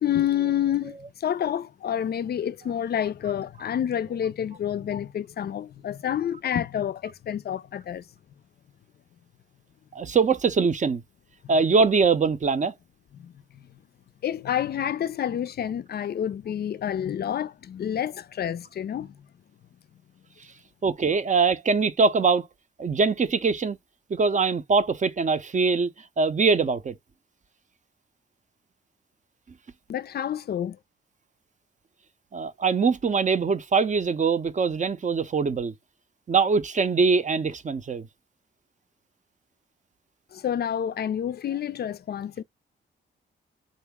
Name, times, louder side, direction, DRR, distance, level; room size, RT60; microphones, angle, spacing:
voice 1, 0.0-8.0 13.1-13.6 14.2-19.2 29.9-30.8 40.3-42.4, left 10 dB, 50° left, 0.4 m, -28 dB
voice 2, 9.9-11.0 11.5-12.7 20.8-22.5 22.8-23.8 24.1-25.9 26.2-27.0 32.3-35.7 36.3-38.1, right 4 dB, 35° right, 0.6 m, -22 dB
3.8 x 2.1 x 3.5 m
cardioid pair, 55°, 21 cm